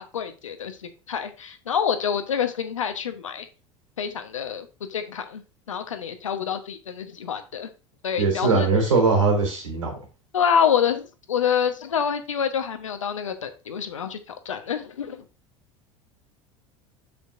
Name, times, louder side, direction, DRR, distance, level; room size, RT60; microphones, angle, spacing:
voice 1, 0.0-3.5 4.0-5.4 5.7-7.7 8.0-8.7 10.3-11.0 11.3-14.2 14.4-15.2, left 7 dB, 85° left, 7 dB, 1.1 m, -27 dB
voice 2, 8.2-9.9, right 4 dB, 85° right, 1 dB, 3.5 m, -21 dB
7.1 x 7.0 x 2.6 m, 0.31 s
hypercardioid pair, 80°, 16 cm